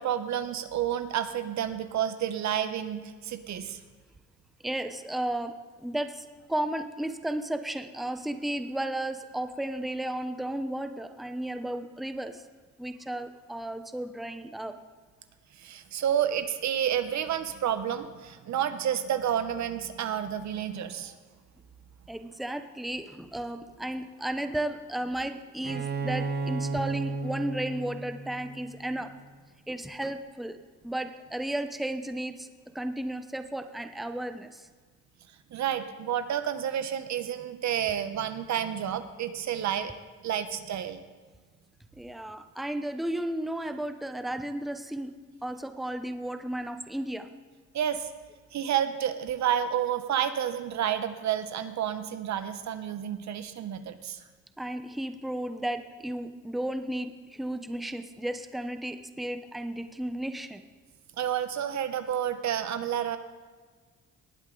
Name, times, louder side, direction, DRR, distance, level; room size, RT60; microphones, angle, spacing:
voice 1, 0.0-3.8 15.5-21.1 35.5-39.9 40.2-41.0 47.7-48.1 48.5-54.2 61.2-63.2, right 9 dB, 65° right, 10 dB, 1.0 m, -30 dB
voice 2, 4.6-5.5 5.8-12.4 12.8-14.8 22.1-29.1 29.7-30.6 30.8-32.5 32.7-34.7 42.0-45.1 45.4-47.3 54.6-60.6, right 1 dB, ahead, 7 dB, 0.8 m, -34 dB
Bowed string instrument, 25.6-29.3, right 4 dB, 35° right, 1.0 m, -34 dB
19.0 x 8.8 x 3.9 m, 1.5 s
cardioid pair, 90°, 30 cm